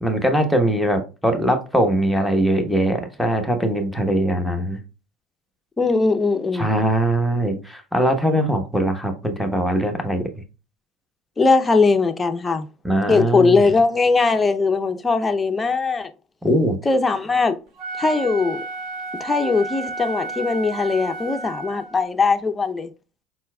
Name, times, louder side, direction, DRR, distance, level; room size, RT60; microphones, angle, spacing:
voice 1, 0.0-4.8 6.5-10.3 12.8-13.7 16.4-16.8, right 1 dB, ahead, 1.1 m, -21 dB
voice 2, 5.8-6.7 11.4-12.7 13.1-16.1 16.9-17.6 18.0-18.7 19.2-22.9, left 4 dB, 20° left, 0.6 m, -20 dB
Wind instrument woodwind instrument, 17.7-22.1, right 3 dB, 55° right, 2.0 m, -32 dB
4.4 x 4.2 x 2.3 m
hypercardioid pair, 75°, 0 cm